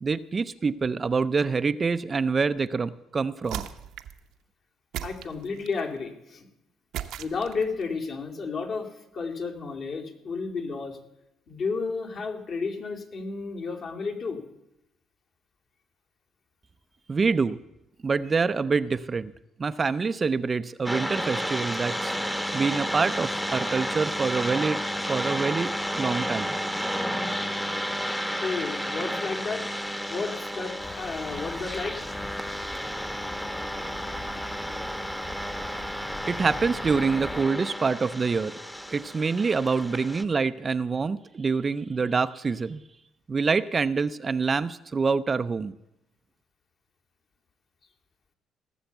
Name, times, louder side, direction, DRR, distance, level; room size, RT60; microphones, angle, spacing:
voice 1, 0.0-3.7 17.1-17.6 18.0-19.3 19.6-22.2 22.5-24.8 25.1-26.6 36.3-38.6 38.9-42.8 43.3-45.7, right 4 dB, 30° right, 13 dB, 0.4 m, -26 dB
sound 1, 3.4-4.2 4.9-5.9 6.9-7.8, right 10 dB, 80° right, 0.8 m, -37 dB
voice 2, 5.0-6.5 7.2-11.0 11.5-14.4 28.4-29.7 30.1-32.0, left 4 dB, 55° left, 2 dB, 2.4 m, -32 dB
sound 2, 20.9-40.2, equal, 5° left, 1.0 m, -32 dB
sound 3, 30.8-37.4, left 2 dB, 25° left, 1.0 m, -42 dB
17.0 x 7.1 x 8.0 m, 0.85 s
cardioid pair, 95°, 0 cm